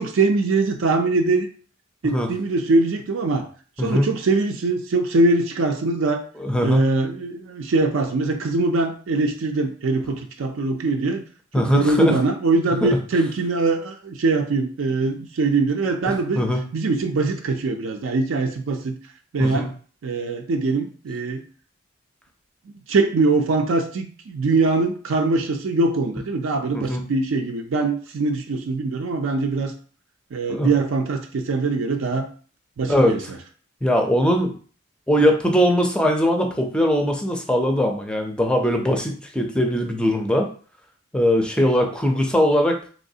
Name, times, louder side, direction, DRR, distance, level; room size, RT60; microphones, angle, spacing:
voice 1, 0.0-1.5 2.0-3.5 3.8-6.3 6.6-11.2 11.5-16.4 16.7-18.9 19.3-19.7 20.0-21.4 22.9-29.7 30.3-32.3 32.8-33.2, right 3 dB, 80° right, 4 dB, 0.4 m, -22 dB
voice 2, 3.8-4.1 6.4-6.8 11.5-12.2 12.8-12.9 16.1-16.6 19.4-19.7 26.7-27.0 30.5-30.7 32.9-33.2 33.8-34.5 35.1-40.5 41.1-42.9, equal, 5° left, 3 dB, 0.4 m, -20 dB
3.2 x 3.0 x 2.7 m, 0.41 s
head